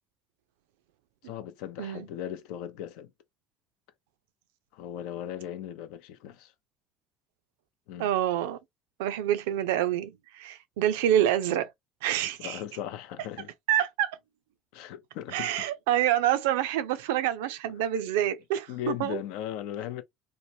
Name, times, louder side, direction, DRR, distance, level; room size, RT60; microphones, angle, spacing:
voice 1, 1.2-3.1 4.7-6.5 7.9-8.1 12.4-13.5 14.7-15.5 18.7-20.0, left 11 dB, 80° left, 0.5 m, -37 dB
voice 2, 8.0-8.6 9.0-11.7 12.0-12.6 13.7-14.2 15.3-19.2, right 11 dB, 90° right, 0.4 m, -27 dB
3.1 x 2.0 x 2.7 m
supercardioid pair, 85°, 0 cm